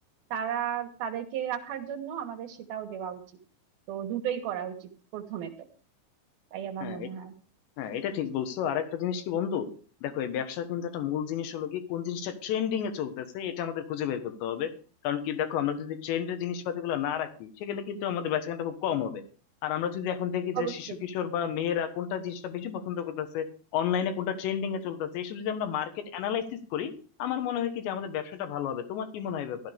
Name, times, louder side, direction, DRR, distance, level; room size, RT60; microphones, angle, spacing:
voice 1, 0.3-3.2 3.9-5.5 6.5-7.3 20.6-20.7, right 9 dB, 70° right, 6 dB, 2.4 m, -34 dB
voice 2, 7.8-9.7 10.0-14.7 15.0-19.2 19.6-23.5 23.7-26.5 26.7-26.9 27.2-29.6, left 9 dB, 70° left, 8 dB, 3.3 m, -31 dB
15.5 x 12.5 x 3.5 m, 0.39 s
omnidirectional pair, 5.8 m